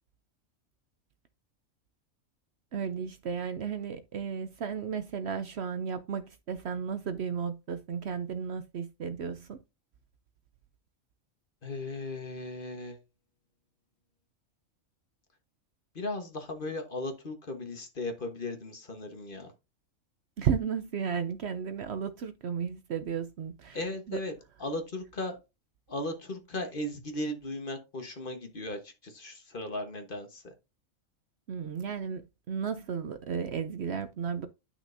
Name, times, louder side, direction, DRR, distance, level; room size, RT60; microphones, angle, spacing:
voice 1, 2.7-9.6 20.4-23.8 24.1-24.2 31.5-34.5, right 7 dB, 60° right, 0.8 m, -34 dB
voice 2, 11.6-13.0 15.9-19.5 23.7-24.3 24.6-25.4 25.9-30.5, left 2 dB, 40° left, 1.4 m, -37 dB
10.5 x 6.0 x 2.6 m
omnidirectional pair, 1.4 m